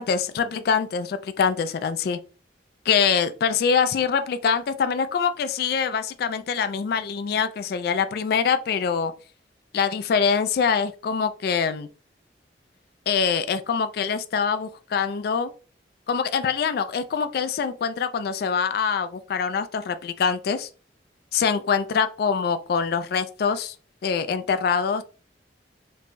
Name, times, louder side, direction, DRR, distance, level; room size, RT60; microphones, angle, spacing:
voice 1, 0.0-2.2 2.9-9.1 9.7-11.9 13.1-15.5 16.1-20.7 21.3-23.8 24.0-25.0, left 6 dB, 60° left, 0.3 m, -24 dB
3.3 x 3.2 x 2.5 m
head